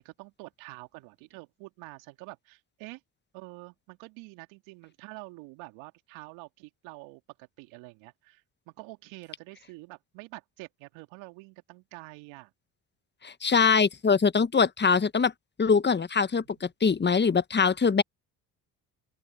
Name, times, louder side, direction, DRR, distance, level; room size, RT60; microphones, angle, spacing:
voice 1, 0.0-3.0 3.3-12.5 16.4-16.5, right 25 dB, 70° right, 2.3 m, -47 dB
voice 2, 13.2-15.3 15.6-18.0, left 5 dB, 20° left, 1.2 m, -23 dB
open air
hypercardioid pair, 55°, 48 cm